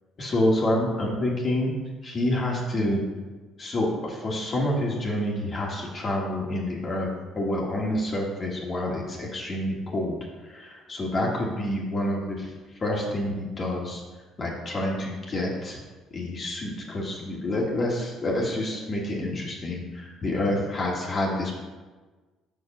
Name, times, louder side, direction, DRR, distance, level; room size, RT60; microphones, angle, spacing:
voice 1, 0.2-1.7 2.0-3.0 3.6-7.1 7.3-12.5 12.8-14.0 14.4-15.8 16.1-21.6, left 1 dB, 35° left, -2 dB, 1.6 m, -28 dB
6.4 x 4.6 x 6.0 m, 1.3 s
cardioid pair, 100°, 0 cm